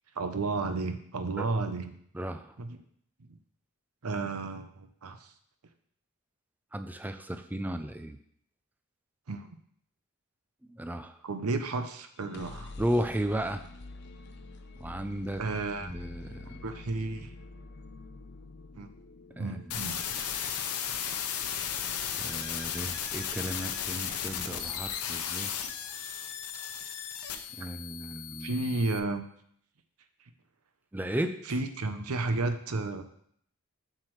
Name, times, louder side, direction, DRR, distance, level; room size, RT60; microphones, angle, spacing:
voice 1, 0.2-1.9 2.6-2.8 4.0-5.3 9.3-9.6 11.2-12.7 15.4-15.9 16.6-17.3 18.7-18.9 19.4-20.0 28.4-29.2 31.5-33.0, right 3 dB, 80° right, 8 dB, 0.7 m, -32 dB
voice 2, 2.1-2.5 6.7-8.2 10.7-11.2 12.8-13.6 14.8-15.4 15.8-16.6 19.4-19.6 22.2-25.5 27.5-28.5 30.9-31.4, right 1 dB, 10° right, 8 dB, 0.4 m, -34 dB
sound 1, 12.1-25.9, left 3 dB, 50° left, 0.6 m, -49 dB
sound 2, 19.7-29.0, left 8 dB, 90° left, 0.7 m, -35 dB
7.4 x 6.6 x 3.2 m, 0.66 s
head